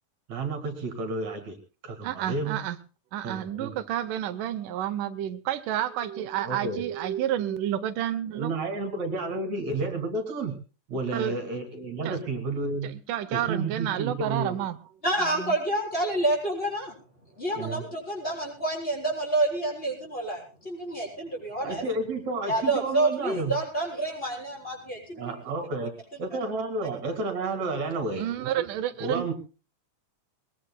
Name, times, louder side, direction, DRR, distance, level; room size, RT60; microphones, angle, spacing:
voice 1, 0.3-1.6 1.8-2.6 3.2-3.8 6.4-6.8 8.3-10.5 10.9-12.9 13.3-14.6 17.6-17.8 21.6-23.5 25.2-28.2 29.0-29.3, right 3 dB, 60° right, 3.4 m, -31 dB
voice 2, 2.0-2.8 3.1-8.5 11.1-11.4 12.1-12.2 12.8-14.8 28.2-29.3, right 11 dB, 85° right, 2.4 m, -30 dB
voice 3, 15.0-16.9 17.4-21.9 22.5-25.2, right 2 dB, 15° left, 7.1 m, -28 dB
22.0 x 21.0 x 2.2 m
omnidirectional pair, 3.6 m